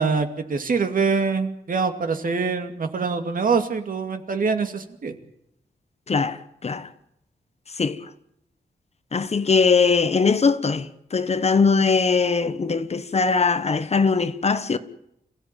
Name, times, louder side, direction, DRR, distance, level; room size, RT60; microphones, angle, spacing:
voice 1, 0.0-5.1, right 5 dB, 55° right, 2.5 m, -24 dB
voice 2, 6.1-6.9 7.7-8.1 9.1-14.8, left 5 dB, 40° left, 1.2 m, -21 dB
27.5 x 16.0 x 9.2 m
wide cardioid pair, 160°, 17 cm